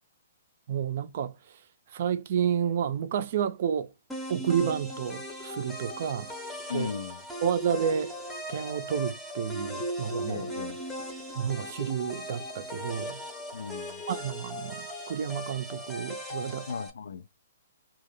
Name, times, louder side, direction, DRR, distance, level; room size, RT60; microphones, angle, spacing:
voice 1, 0.7-1.6 1.9-3.9 4.3-6.3 6.7-6.9 7.4-8.1 8.5-10.4 11.4-13.2 14.1-16.7, right 8 dB, 55° right, 0.4 m, -30 dB
sound 1, 4.1-16.9, equal, 5° left, 0.7 m, -38 dB
voice 2, 6.7-7.2 10.3-10.8 13.5-14.0 16.7-17.3, left 6 dB, 80° left, 0.4 m, -36 dB
2.3 x 2.0 x 3.2 m
hypercardioid pair, 140°, 0 cm